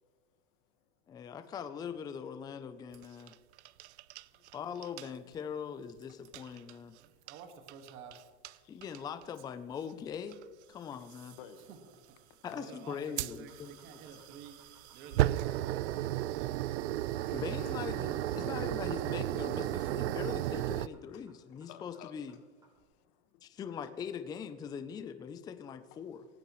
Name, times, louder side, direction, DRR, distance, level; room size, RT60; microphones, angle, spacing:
voice 1, 1.1-3.3 4.5-7.0 8.7-10.4 10.7-11.4 12.4-13.8 17.3-22.4 23.4-26.2, left 7 dB, 10° left, 10 dB, 0.5 m, -41 dB
sound 1, 2.9-4.6 4.8-5.1 6.2-6.7 7.3-7.4 7.7-8.2 8.4-8.5 8.8-9.2 10.3-10.4 11.2-11.3 13.2-20.9, right 14 dB, 80° right, 0.6 m, -34 dB
voice 2, 7.0-8.3 11.5-16.8, right 6 dB, 40° right, 5 dB, 1.8 m, -52 dB
voice 3, 11.0-11.7 14.1-14.2 14.9-15.0 15.5-15.6 16.7-17.8 21.1-22.1 22.7-23.5 23.8-23.9 26.0-26.1, left 10 dB, 50° left, 9 dB, 1.5 m, -57 dB
sound 2, 13.3-22.8, right 1 dB, 10° right, 3.6 m, -65 dB
18.0 x 15.5 x 3.1 m, 1.5 s
supercardioid pair, 145°, 33 cm